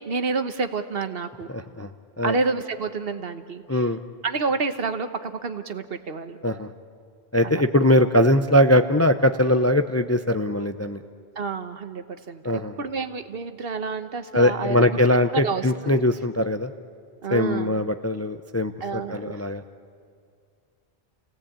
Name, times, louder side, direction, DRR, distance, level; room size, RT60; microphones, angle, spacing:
voice 1, 0.0-1.5 2.2-3.8 4.2-6.4 7.4-7.6 11.3-14.9 15.3-16.0 17.2-17.8 18.8-19.4, right 4 dB, 65° right, 9 dB, 1.3 m, -29 dB
voice 2, 1.5-1.9 2.2-2.4 3.7-4.0 6.4-6.7 7.3-11.0 12.4-12.8 14.3-16.7 17.3-19.6, left 1 dB, 20° left, 8 dB, 0.5 m, -21 dB
29.5 x 17.5 x 8.7 m, 2.2 s
omnidirectional pair, 1.1 m